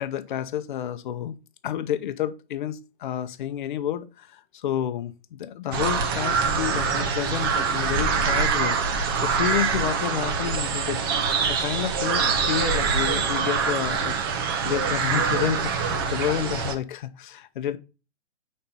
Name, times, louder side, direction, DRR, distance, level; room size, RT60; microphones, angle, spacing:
voice 1, 0.0-1.4 1.6-8.8 9.2-17.8, left 10 dB, 45° left, 0.7 m, -30 dB
sound 1, 5.7-16.7, right 5 dB, 20° right, 0.5 m, -24 dB
5.7 x 4.3 x 5.3 m
hypercardioid pair, 145°, 34 cm